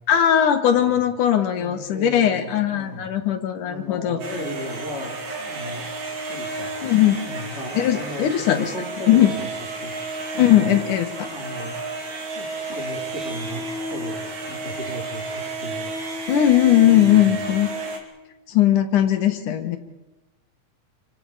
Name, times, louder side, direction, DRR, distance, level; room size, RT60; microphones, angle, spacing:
voice 1, 0.1-4.2 6.8-7.2 7.8-8.7 9.1-9.3 10.4-11.3 16.3-17.7 18.5-19.8, left 11 dB, 80° left, 7 dB, 3.1 m, -19 dB
voice 2, 0.7-1.0 1.5-3.1 3.6-5.9 6.3-6.7 7.1-9.5 9.8-10.8 11.3-11.8 12.3-13.6 13.9-16.0 16.8-17.3, equal, 20° left, -4 dB, 3.6 m, -36 dB
sound 1, 4.2-18.0, right 2 dB, 65° right, 3.7 m, -32 dB
28.0 x 24.0 x 5.0 m, 1.1 s
omnidirectional pair, 3.6 m